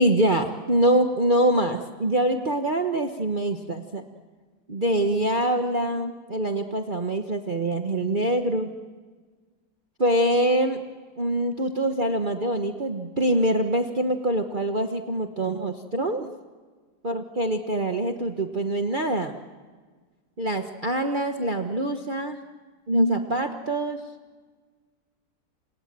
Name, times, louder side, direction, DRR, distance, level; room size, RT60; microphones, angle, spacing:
voice 1, 0.0-4.0 4.7-8.7 10.0-10.8 11.2-16.3 17.0-19.3 20.4-22.4 22.9-24.0, right 1 dB, 30° right, 4 dB, 1.3 m, -24 dB
28.5 x 27.5 x 7.6 m, 1.5 s
omnidirectional pair, 1.9 m